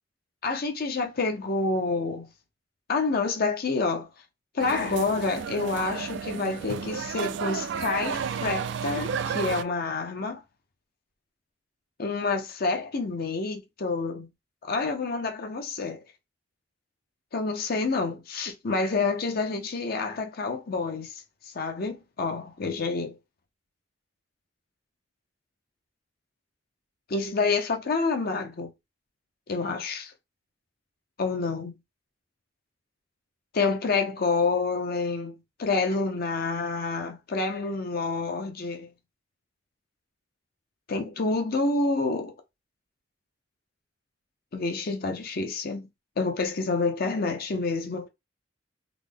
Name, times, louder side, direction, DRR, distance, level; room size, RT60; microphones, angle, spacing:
voice 1, 0.4-2.3 2.9-4.1 4.5-10.4 12.0-14.3 14.6-16.0 17.3-23.2 27.1-28.7 29.5-30.1 31.2-31.8 33.5-38.9 40.9-42.3 44.5-45.9 46.2-48.1, left 3 dB, 55° left, 0.6 m, -28 dB
sound 1, 4.6-9.6, right 7 dB, 65° right, 0.3 m, -32 dB
3.7 x 2.1 x 3.4 m
head